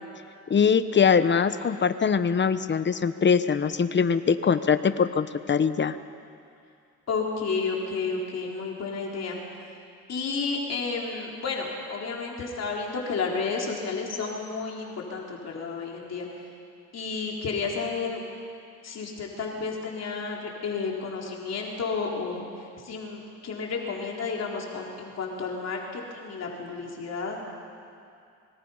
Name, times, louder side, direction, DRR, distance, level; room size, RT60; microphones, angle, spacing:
voice 1, 0.5-6.0, left 6 dB, 35° left, 12 dB, 1.0 m, -22 dB
voice 2, 7.1-9.4 10.1-16.4 16.9-18.2 18.8-22.4 22.8-27.4, left 4 dB, 60° left, -1 dB, 3.7 m, -31 dB
25.5 x 23.0 x 5.7 m, 2.4 s
cardioid pair, 90°, 30 cm